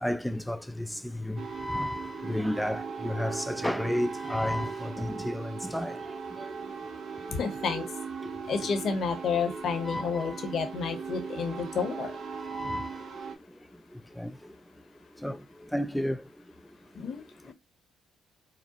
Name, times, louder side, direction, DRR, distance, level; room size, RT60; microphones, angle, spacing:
voice 1, 0.0-0.9 1.1-6.0 9.9-10.3 12.5-12.9 14.2-14.3 15.2-15.4 15.7-16.2, left 1 dB, 5° left, 0.3 m, -31 dB
sound 1, 1.4-13.3, right 5 dB, 65° right, 0.9 m, -39 dB
voice 2, 7.3-7.9 8.5-12.2 16.9-17.5, left 5 dB, 65° left, 1.0 m, -31 dB
5.0 x 2.1 x 2.9 m
cardioid pair, 90°, 0 cm